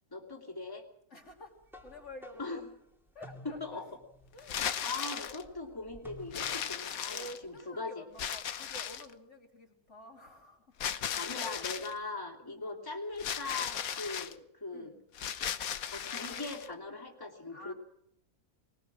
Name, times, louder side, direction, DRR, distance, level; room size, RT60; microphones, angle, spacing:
voice 1, 0.1-0.9 2.4-2.7 3.4-3.8 4.8-8.0 11.2-14.9 15.9-17.7, left 3 dB, 15° left, 1 dB, 3.0 m, -40 dB
voice 2, 1.1-1.5 1.8-2.7 3.1-3.8 4.3-4.6 7.1-10.9 11.3-11.5 12.5-12.8 14.7-15.0 17.5-17.7, equal, 50° left, 1 dB, 3.2 m, -50 dB
sound 1, 1.3-6.7, left 1 dB, ahead, 2.7 m, -53 dB
sound 2, 4.4-5.4 6.3-7.6 8.2-9.1 10.8-11.9 13.2-14.3 15.1-16.7, left 8 dB, 75° left, 1.4 m, -36 dB
21.5 x 20.0 x 6.3 m, 0.74 s
omnidirectional pair, 1.5 m